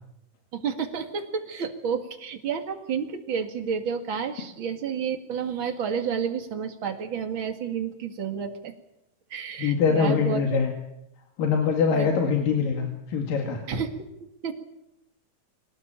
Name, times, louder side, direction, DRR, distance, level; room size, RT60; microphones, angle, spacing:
voice 1, 0.5-8.7 9.3-10.4 11.9-12.1 13.7-13.9 14.4-14.5, right 7 dB, 40° right, 6 dB, 2.5 m, -30 dB
voice 2, 9.6-10.7 11.4-13.6, left 6 dB, 90° left, 3 dB, 3.9 m, -23 dB
23.0 x 18.5 x 8.9 m, 0.84 s
omnidirectional pair, 3.8 m